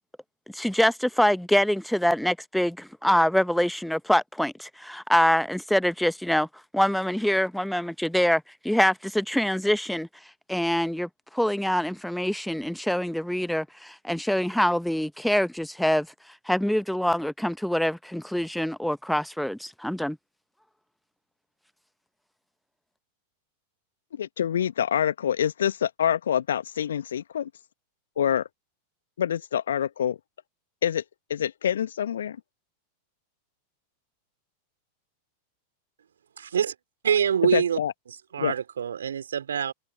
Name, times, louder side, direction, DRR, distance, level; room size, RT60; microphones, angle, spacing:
voice 1, 0.5-6.5 6.7-10.1 10.5-16.1 16.5-20.2, equal, ahead, 1.0 m, -25 dB
voice 2, 24.1-27.5 28.2-28.5 29.2-30.2 30.8-31.0 31.3-32.4 37.5-37.9 38.4-38.5, left 9 dB, 65° left, 1.8 m, -26 dB
voice 3, 36.4-36.7 37.0-37.8 38.3-39.7, right 8 dB, 65° right, 4.7 m, -25 dB
figure-of-eight pair, 90°, 0 cm